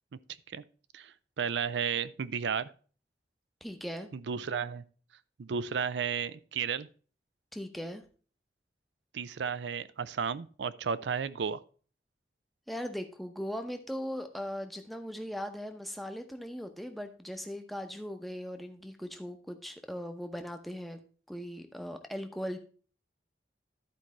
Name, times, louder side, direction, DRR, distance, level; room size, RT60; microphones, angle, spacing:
voice 1, 0.9-2.7 4.1-4.8 5.4-6.9 9.1-11.6, right 6 dB, 90° right, 0.5 m, -33 dB
voice 2, 3.6-4.1 7.5-8.0 12.7-21.0 21.3-22.6, equal, ahead, 0.7 m, -39 dB
11.5 x 4.6 x 4.2 m
head